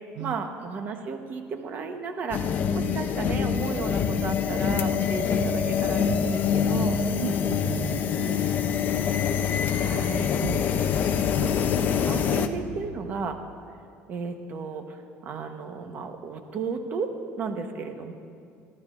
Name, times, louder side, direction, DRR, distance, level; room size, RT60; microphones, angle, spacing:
voice 1, 0.2-2.5 2.7-7.0 9.6-10.3 11.4-13.4 14.1-18.1, right 5 dB, 40° right, 5 dB, 1.1 m, -34 dB
sound 1, 2.3-12.5, left 7 dB, 40° left, 0.6 m, -25 dB
sound 2, 3.5-9.3, left 3 dB, 10° left, 2.2 m, -46 dB
voice 2, 7.2-8.7 10.4-10.7, right 11 dB, 85° right, 9 dB, 0.6 m, -35 dB
29.5 x 12.0 x 2.6 m, 2.3 s
cardioid pair, 150°, 5 cm